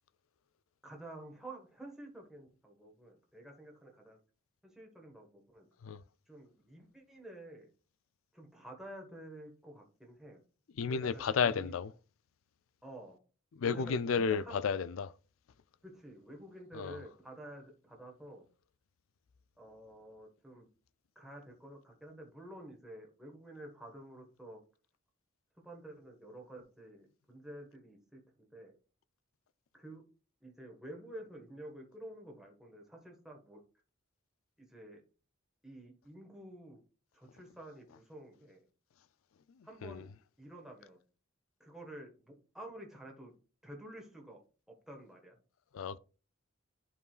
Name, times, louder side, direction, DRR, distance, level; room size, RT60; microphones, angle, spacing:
voice 1, 0.8-4.2 4.6-5.7 6.3-7.7 8.3-10.4 10.9-11.7 12.8-13.2 13.6-14.6 15.8-18.4 19.6-20.7 21.1-24.6 25.6-28.7 29.7-30.0 30.4-33.6 34.6-35.0 35.6-36.8 37.1-38.6 39.6-40.1 40.4-41.0 41.6-43.3 43.6-44.4 44.7-45.4, right 1 dB, ahead, 1.5 m, -50 dB
voice 2, 10.8-11.9 13.6-15.1 16.7-17.0 39.8-40.0 45.7-46.0, left 6 dB, 75° left, 0.4 m, -32 dB
11.0 x 4.8 x 2.4 m
head